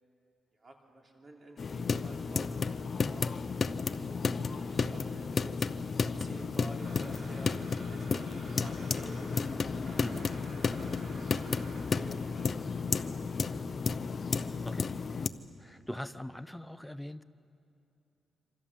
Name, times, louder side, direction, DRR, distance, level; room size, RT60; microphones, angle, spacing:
voice 1, 0.5-3.3 3.9-5.7 6.0-7.6 7.9-10.1 10.5-13.6, right 2 dB, 35° right, 1 dB, 3.2 m, -51 dB
sound 1, 1.6-15.3, left 5 dB, 40° left, 0.7 m, -33 dB
Domestic sounds home sounds, 6.8-11.8, right 3 dB, 70° right, 4.9 m, -52 dB
voice 2, 15.6-17.2, left 1 dB, 5° left, 12 dB, 0.7 m, -41 dB
27.0 x 25.5 x 7.5 m, 2.7 s
cardioid pair, 125°, 0 cm